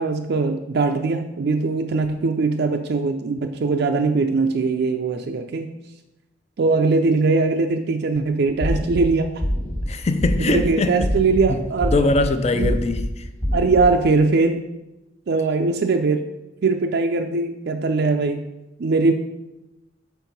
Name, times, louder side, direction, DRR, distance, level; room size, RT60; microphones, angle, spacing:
voice 1, 0.0-5.7 6.6-9.4 10.4-12.1 12.5-12.8 13.5-14.6 15.3-16.2 16.6-18.5 18.8-19.1, right 3 dB, 55° right, 0.4 m, -21 dB
sound 1, 8.6-9.0 9.4-9.8 10.2-10.6 11.0-11.4 11.8-12.2 12.6-13.0 13.4-13.8, equal, 10° left, 1.2 m, -24 dB
voice 2, 9.9-11.1 11.5-13.3, left 2 dB, 35° left, 0.5 m, -22 dB
5.8 x 4.5 x 5.2 m
head